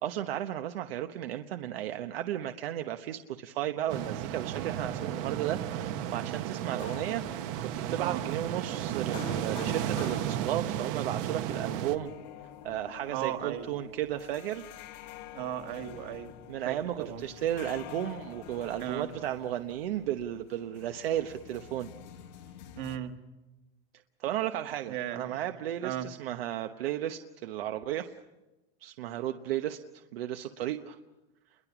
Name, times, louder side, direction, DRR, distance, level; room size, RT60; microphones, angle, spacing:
voice 1, 0.0-12.1 12.6-14.7 16.5-21.9 24.2-28.1 28.8-31.0, right 12 dB, 80° right, 7 dB, 1.1 m, -34 dB
sound 1, 3.9-12.0, right 10 dB, 35° right, 0.9 m, -34 dB
sound 2, 6.8-23.0, left 10 dB, 45° left, 1.2 m, -48 dB
voice 2, 13.1-13.7 15.3-16.4 16.7-17.2 18.8-19.1 22.8-23.2 24.9-25.3 25.8-26.1, right 11 dB, 55° right, 6 dB, 2.0 m, -36 dB
29.0 x 22.5 x 6.0 m, 1.0 s
supercardioid pair, 175°, 29 cm